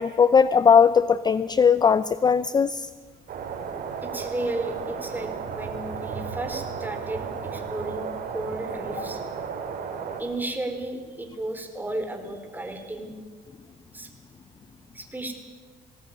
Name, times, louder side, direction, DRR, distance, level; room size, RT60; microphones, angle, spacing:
voice 1, 0.0-2.9, left 6 dB, 25° left, 15 dB, 0.6 m, -19 dB
sound 1, 3.3-10.2, right 6 dB, 55° right, 4.3 m, -34 dB
voice 2, 4.0-9.2 10.2-13.1 13.9-14.1 14.9-15.3, right 1 dB, 10° right, 5 dB, 3.8 m, -33 dB
19.5 x 18.0 x 9.3 m, 1.4 s
cardioid pair, 110°, 17 cm